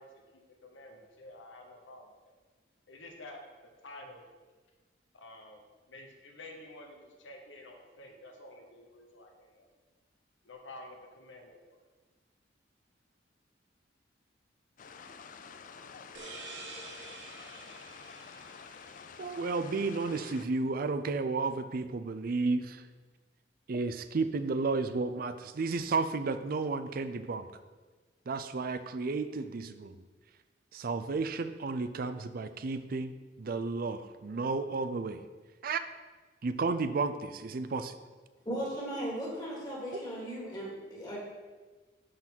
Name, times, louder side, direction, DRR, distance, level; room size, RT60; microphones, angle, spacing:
voice 1, 0.0-2.3 2.9-4.2 5.1-9.7 10.4-11.8, left 1 dB, 90° left, 3 dB, 1.1 m, -50 dB
sound 1, 14.8-20.5, left 6 dB, 45° left, 0.4 m, -49 dB
sound 2, 16.1-19.6, right 3 dB, 75° right, 1.2 m, -48 dB
voice 2, 19.2-22.8 23.7-27.5 28.3-30.0 30.7-35.2 35.6-35.8 36.4-38.0, right 3 dB, 50° right, 11 dB, 0.5 m, -32 dB
voice 3, 38.4-41.2, equal, 20° left, -5 dB, 2.3 m, -37 dB
11.5 x 4.0 x 4.5 m, 1.3 s
head